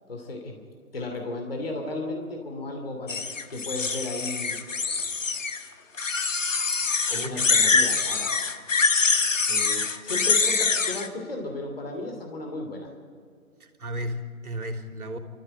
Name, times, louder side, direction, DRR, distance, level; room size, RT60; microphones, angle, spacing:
voice 1, 0.1-0.6 0.9-3.2 3.5-4.6 7.1-8.4 9.5-12.9, left 2 dB, 40° left, 3 dB, 2.7 m, -34 dB
sound 1, 3.1-5.6 6.0-11.1, left 4 dB, 60° left, 1.3 m, -24 dB
voice 2, 7.1-7.7 9.8-9.9 13.6-15.2, equal, 80° right, 4 dB, 3.3 m, -35 dB
23.5 x 14.5 x 8.9 m, 2.2 s
hypercardioid pair, 180°, 44 cm